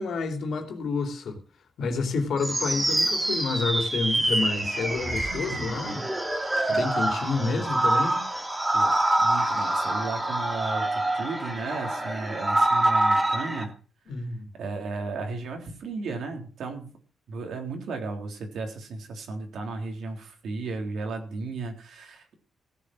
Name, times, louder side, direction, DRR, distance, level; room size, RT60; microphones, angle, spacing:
voice 1, 0.0-1.4 1.8-6.0 6.7-8.3 14.1-14.5, left 4 dB, 70° left, 3.0 m, -29 dB
sound 1, 2.4-13.6, right 1 dB, 15° right, 2.4 m, -26 dB
voice 2, 9.2-13.7 14.5-17.0 17.3-22.3, right 3 dB, 75° right, 3.6 m, -34 dB
16.5 x 7.5 x 6.2 m
cardioid pair, 125°, 0 cm